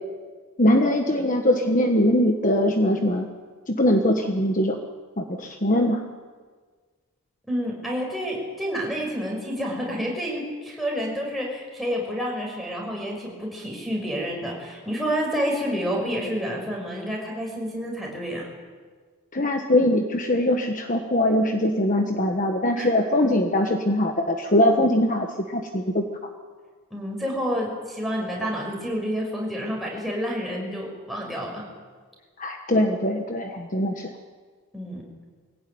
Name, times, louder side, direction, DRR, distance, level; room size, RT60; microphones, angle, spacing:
voice 1, 0.6-3.3 3.7-4.8 5.2-6.0 19.3-26.0 32.4-34.1, left 1 dB, 35° left, 4 dB, 1.3 m, -22 dB
voice 2, 7.5-18.4 22.8-22.9 26.9-31.7 34.7-35.0, equal, ahead, -2 dB, 5.9 m, -29 dB
22.5 x 17.0 x 9.5 m, 1.5 s
head